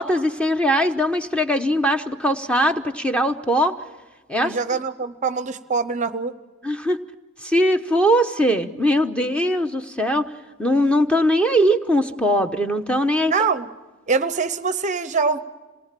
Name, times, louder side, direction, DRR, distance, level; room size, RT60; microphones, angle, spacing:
voice 1, 0.0-3.8 4.3-4.8 6.6-7.0 7.4-10.3 10.6-13.3, equal, 5° left, 7 dB, 0.9 m, -20 dB
voice 2, 4.4-6.3 13.3-13.7 14.1-15.4, right 4 dB, 35° right, 13 dB, 0.7 m, -23 dB
27.0 x 19.0 x 7.5 m, 1.2 s
head